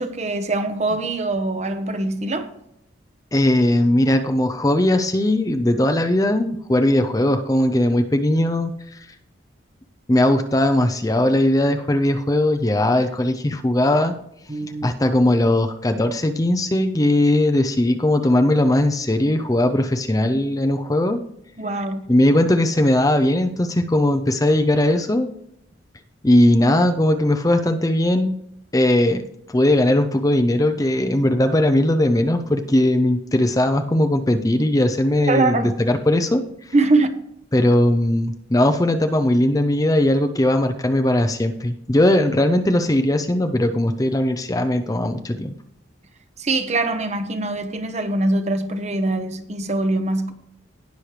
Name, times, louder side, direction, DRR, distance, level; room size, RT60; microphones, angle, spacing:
voice 1, 0.0-2.5 14.5-14.9 21.6-22.1 35.3-35.7 36.7-37.2 46.4-50.3, right 2 dB, 35° right, 0.9 m, -23 dB
voice 2, 3.3-8.7 10.1-14.1 14.8-21.2 22.1-25.3 26.2-28.3 28.7-29.2 29.5-36.4 37.5-45.5, left 1 dB, 20° left, 0.5 m, -19 dB
18.5 x 6.4 x 3.3 m
head